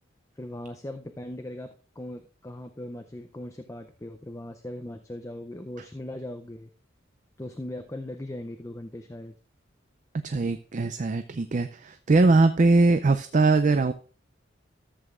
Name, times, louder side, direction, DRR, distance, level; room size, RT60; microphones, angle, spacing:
voice 1, 0.4-6.7 7.4-9.3, left 1 dB, 15° left, 6 dB, 0.5 m, -39 dB
voice 2, 10.2-13.9, right 3 dB, 40° right, 9 dB, 0.4 m, -21 dB
14.0 x 7.9 x 2.5 m, 0.38 s
head